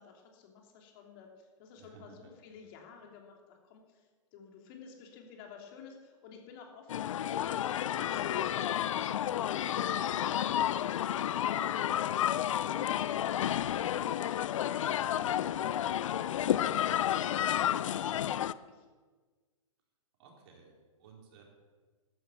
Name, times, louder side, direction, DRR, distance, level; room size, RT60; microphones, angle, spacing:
voice 1, 0.0-18.9, left 6 dB, 40° left, 1 dB, 3.0 m, -53 dB
voice 2, 1.8-2.3 20.2-21.4, right 5 dB, 50° right, 0 dB, 4.3 m, -56 dB
sound 1, 6.9-18.5, left 11 dB, 65° left, 0.6 m, -31 dB
13.0 x 13.0 x 7.0 m, 1.4 s
hypercardioid pair, 140°, 17 cm